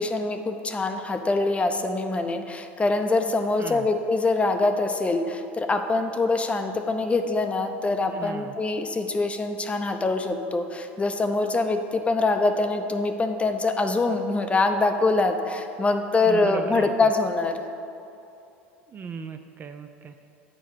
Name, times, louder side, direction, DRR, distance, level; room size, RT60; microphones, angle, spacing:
voice 1, 0.0-17.6, left 3 dB, 20° left, 7 dB, 0.6 m, -24 dB
voice 2, 8.1-8.5 16.2-17.1 18.9-20.1, right 6 dB, 30° right, 8 dB, 0.4 m, -37 dB
7.5 x 4.6 x 6.5 m, 2.7 s
hypercardioid pair, 85°, 7 cm